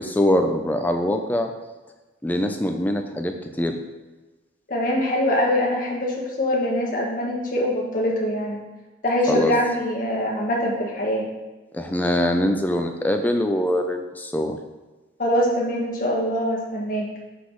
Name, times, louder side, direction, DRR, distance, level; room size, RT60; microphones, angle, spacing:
voice 1, 0.0-1.5 2.2-3.8 9.3-9.5 11.7-14.6, left 1 dB, 10° left, 5 dB, 0.4 m, -23 dB
voice 2, 4.7-8.6 9.0-11.3 15.2-17.0, left 1 dB, 45° left, -2 dB, 1.3 m, -23 dB
6.1 x 5.9 x 3.1 m, 1.2 s
head